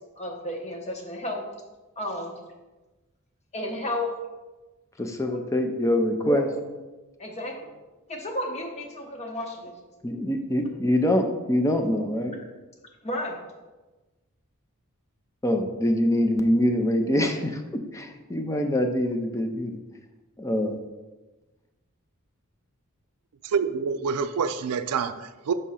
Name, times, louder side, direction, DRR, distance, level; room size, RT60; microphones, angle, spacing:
voice 1, 0.2-1.4 2.0-2.3 3.5-4.1 5.3-5.4 6.2-6.5 7.2-7.7 8.1-9.7 13.0-13.4, left 1 dB, 30° left, 0.9 m, -32 dB
voice 2, 5.0-6.5 10.0-12.4 15.4-19.8 20.4-20.8, left 1 dB, 15° left, 0.5 m, -24 dB
voice 3, 23.4-25.5, right 6 dB, 85° right, 0.4 m, -27 dB
5.4 x 3.6 x 5.6 m
head